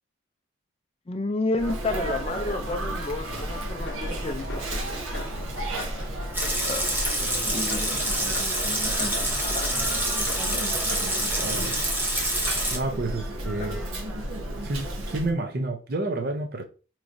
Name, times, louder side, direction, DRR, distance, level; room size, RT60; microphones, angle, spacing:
voice 1, 1.1-5.0 6.5-8.4 8.7-9.8 13.6-13.8, left 2 dB, 30° left, 0.4 m, -32 dB
Sneeze, 1.6-15.3, right 1 dB, 90° right, 1.0 m, -33 dB
sound 1, 3.9-13.0, left 3 dB, 55° left, 0.7 m, -42 dB
Water tap faucet / Sink (filling or washing) / Liquid, 6.3-12.8, right 1 dB, 10° right, 0.7 m, -27 dB
voice 2, 11.3-11.8 12.7-13.8 14.6-16.7, right 2 dB, 45° right, 0.5 m, -30 dB
4.8 x 3.1 x 2.6 m
head